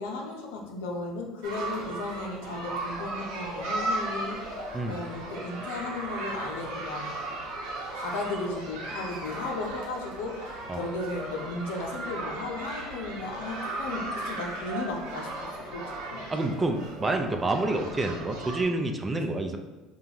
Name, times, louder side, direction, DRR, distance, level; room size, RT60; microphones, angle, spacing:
voice 1, 0.0-7.1 7.9-16.2, left 2 dB, 85° left, 1 dB, 0.7 m, -35 dB
sound 1, 1.4-18.6, right 2 dB, 80° right, 1.0 m, -36 dB
voice 2, 16.3-19.6, right 2 dB, 20° right, 5 dB, 0.5 m, -28 dB
5.3 x 2.4 x 2.9 m, 1.2 s
supercardioid pair, 90°, 0 cm